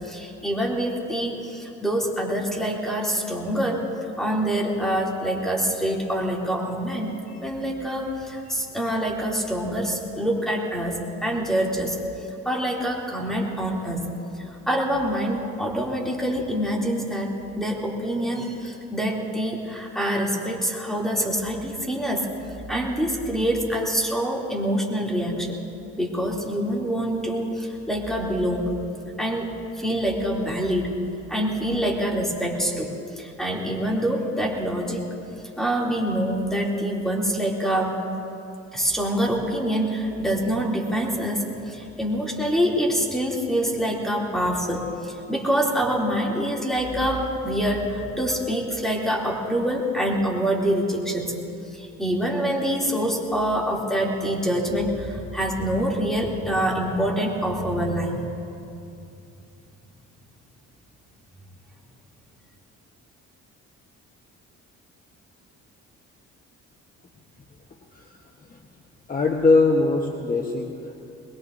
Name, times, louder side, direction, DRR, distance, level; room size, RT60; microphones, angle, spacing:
voice 1, 0.0-3.8 4.2-7.1 7.4-12.0 12.4-14.1 14.7-22.3 22.7-25.6 26.0-28.7 29.2-29.5 29.8-30.9 31.3-35.1 35.6-37.9 38.7-51.3 51.7-58.3, equal, ahead, -2 dB, 2.9 m, -25 dB
voice 2, 69.1-71.1, left 3 dB, 30° left, 1 dB, 1.2 m, -21 dB
22.0 x 21.5 x 2.7 m, 2.7 s
cardioid pair, 90°, 30 cm